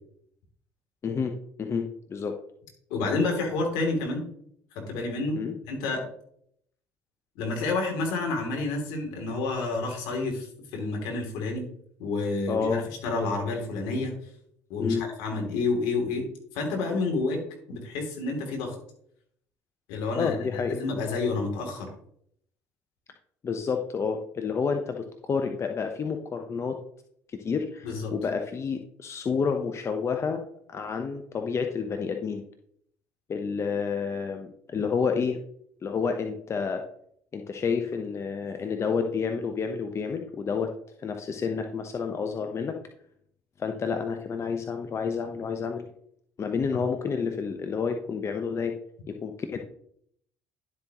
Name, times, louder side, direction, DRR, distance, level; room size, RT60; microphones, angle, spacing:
voice 1, 1.0-2.4 5.3-5.5 12.5-12.8 14.8-15.0 20.1-20.8 23.4-26.8 27.3-30.4 30.7-32.4 33.3-35.4 35.8-36.8 37.3-40.7 41.0-42.8 43.6-45.9 46.4-48.8 49.1-49.6, left 5 dB, 40° left, 5 dB, 1.0 m, -29 dB
voice 2, 2.9-4.2 4.7-5.4 5.7-6.0 7.4-10.5 10.7-11.6 12.0-14.1 14.7-16.3 16.5-17.4 17.7-18.7 19.9-21.9 27.8-28.1, left 3 dB, 75° left, 1 dB, 3.0 m, -29 dB
11.5 x 7.8 x 3.1 m, 0.69 s
hypercardioid pair, 65°, 7 cm